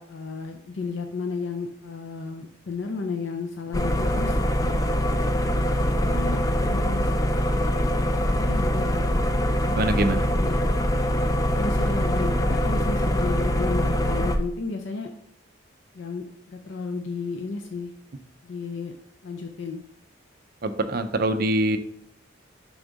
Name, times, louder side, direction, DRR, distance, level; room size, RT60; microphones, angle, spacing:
voice 1, 0.0-4.8 6.0-7.1 8.3-9.0 10.0-10.1 10.4-10.6 11.6-15.1 15.9-17.9 18.4-19.0 19.2-19.8, left 4 dB, 65° left, 4 dB, 0.5 m, -33 dB
sound 1, 3.7-14.4, equal, 15° left, 0.4 m, -23 dB
voice 2, 9.8-10.2 20.6-21.8, right 1 dB, 45° right, 9 dB, 0.5 m, -24 dB
7.0 x 3.6 x 3.9 m, 0.67 s
head